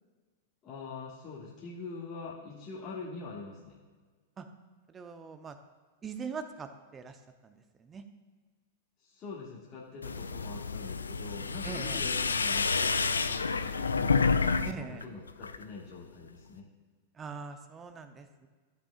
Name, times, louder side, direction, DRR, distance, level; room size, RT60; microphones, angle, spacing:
voice 1, 0.6-3.8 9.0-16.7, left 4 dB, 30° left, -7 dB, 1.7 m, -44 dB
voice 2, 4.9-5.6 6.0-8.0 11.6-12.0 14.6-15.0 17.1-18.5, right 5 dB, 20° right, 8 dB, 0.8 m, -42 dB
sound 1, 10.0-14.7 15.0-15.6, left 4 dB, 80° left, 0.4 m, -29 dB
14.5 x 5.8 x 2.5 m, 1.4 s
figure-of-eight pair, 95°, 0 cm